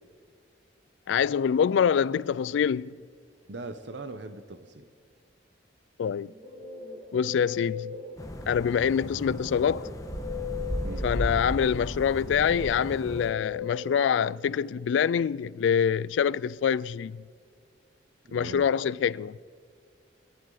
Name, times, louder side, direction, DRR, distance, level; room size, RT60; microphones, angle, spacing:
voice 1, 1.1-3.0 6.0-6.3 7.1-7.9 8.5-9.9 11.0-17.2 18.3-19.4, left 7 dB, 75° left, 0.3 m, -25 dB
voice 2, 3.5-4.9 10.8-11.0 18.2-18.7, right 2 dB, 65° right, 0.8 m, -40 dB
Guitar, 6.1-8.6 9.4-14.8, left 6 dB, 30° right, 2.0 m, -40 dB
sound 1, 8.2-13.3, equal, 20° left, 1.2 m, -35 dB
24.5 x 11.5 x 3.9 m
head